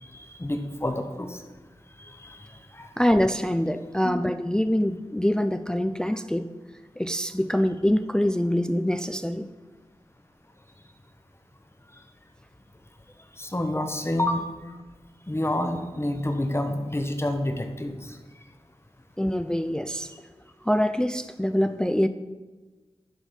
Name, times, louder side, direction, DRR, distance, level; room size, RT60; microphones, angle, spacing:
voice 1, 0.0-1.4 2.0-2.5 2.7-2.9 4.0-4.1 13.4-14.4 15.3-18.2, left 1 dB, 25° left, 6 dB, 1.0 m, -28 dB
voice 2, 3.0-6.5 7.0-9.5 13.7-13.8 19.2-20.1 20.6-22.1, equal, 5° left, 10 dB, 0.3 m, -24 dB
10.5 x 4.2 x 5.2 m, 1.2 s
wide cardioid pair, 50°, 11 cm